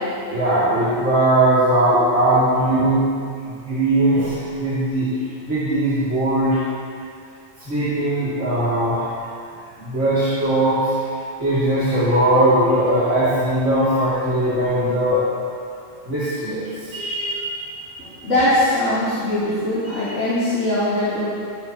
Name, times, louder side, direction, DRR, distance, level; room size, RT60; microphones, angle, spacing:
voice 1, 0.3-5.1 5.5-6.6 7.6-9.1 9.8-10.9 11.4-15.2 16.1-17.5, right 1 dB, 75° right, -12 dB, 3.2 m, -19 dB
voice 2, 18.0-21.2, left 1 dB, 85° left, -13 dB, 3.7 m, -21 dB
27.0 x 10.5 x 3.1 m, 2.4 s
omnidirectional pair, 1.3 m